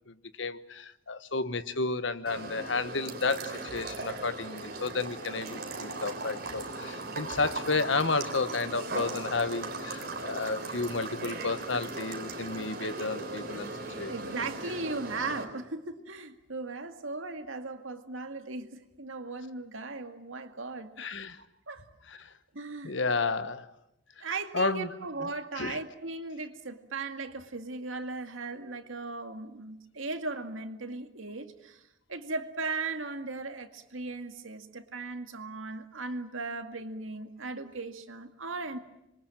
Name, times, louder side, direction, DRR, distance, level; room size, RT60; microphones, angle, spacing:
voice 1, 0.1-13.7 14.0-14.1 21.0-21.4 22.1-22.3 22.8-23.7 24.2-24.3 24.5-24.9 25.2-25.3 25.6-25.8, left 3 dB, 70° left, 13 dB, 1.2 m, -32 dB
sound 1, 2.3-15.4, right 3 dB, 50° right, 4.1 m, -38 dB
voice 2, 14.1-20.9 21.4-21.8 22.5-23.0 24.2-31.8 32.1-38.8, right 3 dB, 90° right, 7 dB, 2.2 m, -37 dB
26.5 x 23.0 x 9.1 m, 0.86 s
head